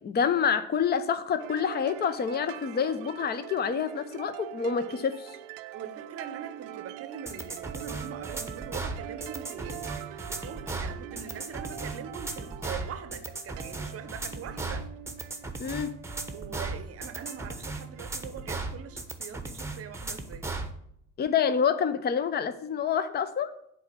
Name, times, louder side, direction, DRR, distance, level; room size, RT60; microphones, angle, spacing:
voice 1, 0.0-5.4 15.6-15.9 21.2-23.5, left 7 dB, 25° left, 0.7 m, -27 dB
sound 1, 1.4-19.2, right 13 dB, 60° right, 0.5 m, -44 dB
voice 2, 5.7-14.9 16.3-20.5, right 7 dB, 35° right, 0.9 m, -42 dB
sound 2, 7.3-20.7, right 3 dB, 5° right, 1.0 m, -36 dB
7.5 x 4.2 x 6.7 m
figure-of-eight pair, 60°, 42 cm